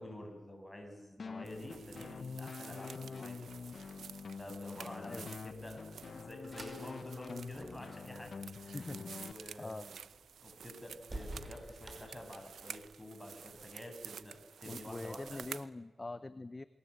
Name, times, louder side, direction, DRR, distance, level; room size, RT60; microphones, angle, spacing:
voice 1, 0.0-3.5 4.4-8.8 9.2-10.0 10.4-15.4, left 1 dB, 10° left, 2 dB, 7.2 m, -49 dB
sound 1, 1.2-9.3, left 5 dB, 55° left, 0.9 m, -46 dB
sound 2, 1.4-15.7, right 7 dB, 90° right, 0.8 m, -51 dB
voice 2, 5.0-5.4 8.7-9.1 9.6-9.9 14.7-16.6, left 2 dB, 25° left, 13 dB, 0.9 m, -44 dB
sound 3, 6.2-12.9, right 1 dB, 25° right, 5.5 m, -52 dB
28.0 x 23.0 x 8.2 m, 1.2 s
wide cardioid pair, 110°, 0 cm